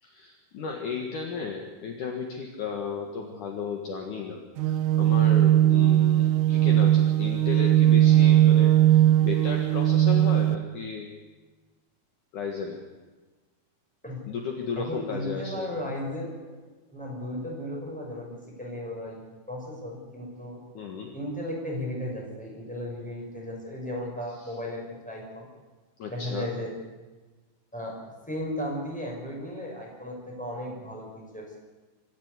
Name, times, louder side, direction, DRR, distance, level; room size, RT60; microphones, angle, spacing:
voice 1, 0.0-11.1 12.3-12.8 14.3-15.7 20.7-21.1 24.4-24.5 26.0-26.6, left 5 dB, 60° left, 2 dB, 2.9 m, -35 dB
sound 1, 4.6-10.6, right 13 dB, 75° right, 2.0 m, -19 dB
voice 2, 14.8-16.5 16.9-19.2 19.5-20.6 21.1-25.5 26.1-26.7 27.7-27.9 28.3-31.6, left 1 dB, ahead, -2 dB, 6.0 m, -35 dB
25.0 x 13.0 x 8.3 m, 1.2 s
omnidirectional pair, 4.6 m